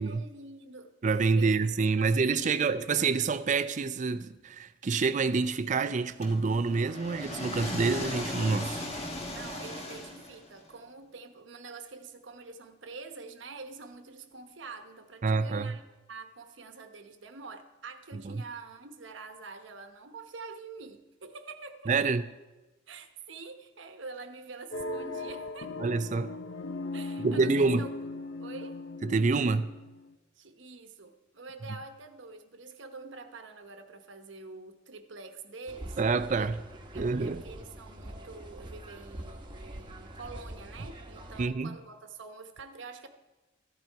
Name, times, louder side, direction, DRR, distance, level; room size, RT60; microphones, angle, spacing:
voice 1, 0.0-0.9 1.4-1.7 1.9-2.8 9.3-15.8 16.1-21.9 22.9-25.8 26.9-27.9 28.4-28.8 30.4-36.5 36.9-43.1, right 4 dB, 75° right, 1.0 m, -46 dB
voice 2, 1.0-8.9 15.2-15.8 18.2-18.3 21.9-22.3 25.8-26.3 27.2-27.8 29.0-29.7 36.0-36.6 36.9-37.4 41.4-41.8, right 4 dB, 40° right, 0.4 m, -27 dB
sound 1, 6.2-10.6, left 1 dB, 35° left, 1.5 m, -37 dB
sound 2, 24.7-30.1, left 2 dB, 70° left, 0.6 m, -38 dB
sound 3, 35.7-41.5, right 1 dB, 25° right, 1.0 m, -44 dB
13.5 x 10.5 x 4.6 m
head